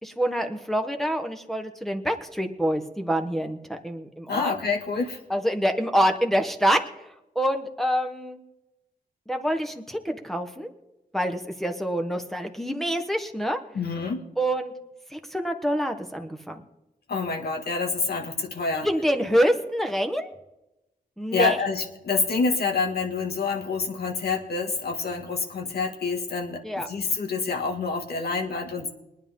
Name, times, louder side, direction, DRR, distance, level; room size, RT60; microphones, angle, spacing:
voice 1, 0.0-4.5 5.3-7.1 7.3-8.4 9.3-10.7 11.1-13.6 14.4-14.7 15.1-16.6 18.8-20.3 21.2-21.6 26.6-26.9, equal, ahead, 4 dB, 1.1 m, -26 dB
voice 2, 4.3-5.2 13.7-14.2 17.1-18.9 21.3-28.9, left 4 dB, 85° left, 2 dB, 2.0 m, -27 dB
22.5 x 10.0 x 3.7 m, 0.95 s
wide cardioid pair, 125°, 16 cm